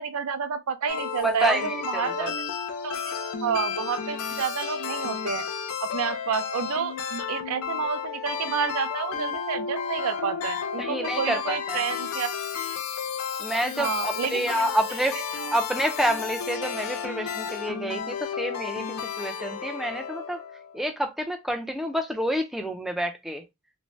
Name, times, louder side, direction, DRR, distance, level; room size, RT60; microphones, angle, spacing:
voice 1, 0.0-2.3 2.8-3.1 3.4-5.4 5.8-12.3 13.8-14.7 15.4-15.6, right 6 dB, 70° right, 0.4 m, -30 dB
sound 1, 0.9-20.8, left 7 dB, 85° left, 0.5 m, -32 dB
voice 2, 1.2-2.3 10.8-11.8 13.4-15.2 15.5-20.4 20.7-23.4, right 1 dB, ahead, 0.3 m, -28 dB
2.6 x 2.0 x 3.1 m
head